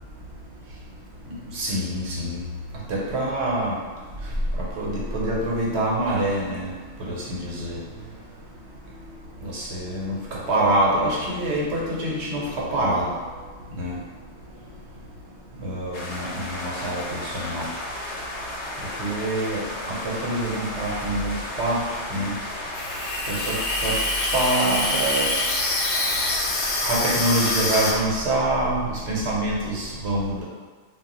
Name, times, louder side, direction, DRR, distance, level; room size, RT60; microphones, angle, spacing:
voice 1, 1.5-2.4 2.9-3.7 4.8-6.7 7.0-7.8 9.4-13.1 13.8-14.0 15.6-17.7 19.0-19.6 19.9-21.8 22.1-22.4 23.3-23.5 23.8-24.0 24.3-25.3 26.8-30.4, right 1 dB, 80° right, -4 dB, 1.0 m, -25 dB
sound 1, 15.9-28.0, left 1 dB, 85° left, 1.0 m, -34 dB
Water tap faucet / Sink (filling or washing), 22.7-27.9, left 2 dB, 55° left, 0.5 m, -25 dB
2.3 x 2.1 x 3.7 m, 1.4 s
omnidirectional pair, 1.1 m